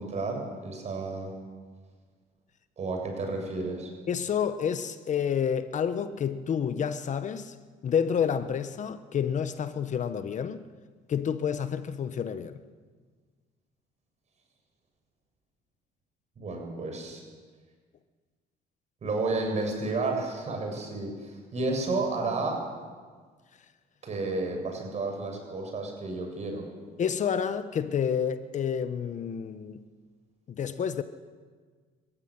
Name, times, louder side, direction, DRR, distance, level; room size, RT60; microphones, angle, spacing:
voice 1, 0.0-1.3 2.8-3.9 16.4-17.2 19.0-22.6 24.0-26.7, right 3 dB, 40° right, 6.9 m, -31 dB
voice 2, 4.1-7.5 7.8-10.7 11.1-12.6 27.0-29.8 30.5-31.0, left 7 dB, 45° left, 1.1 m, -29 dB
25.0 x 15.0 x 9.8 m
cardioid pair, 110°, 17 cm